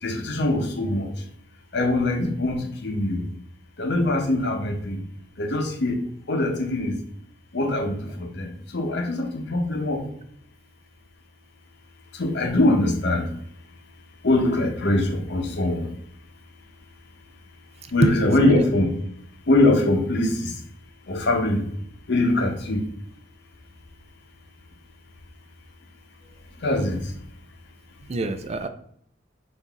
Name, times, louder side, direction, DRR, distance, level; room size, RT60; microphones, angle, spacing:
voice 1, 0.0-1.1 1.7-3.3 3.8-5.0 5.4-6.0 6.3-7.0 7.5-10.1 12.1-13.3 14.2-15.9 17.9-19.0 19.5-20.6 21.1-21.7 22.1-22.9 26.6-27.1, left 2 dB, 65° left, 3 dB, 0.8 m, -23 dB
voice 2, 18.0-18.6 28.1-28.7, right 2 dB, 35° right, 10 dB, 0.4 m, -25 dB
5.6 x 2.7 x 3.5 m, 0.67 s
head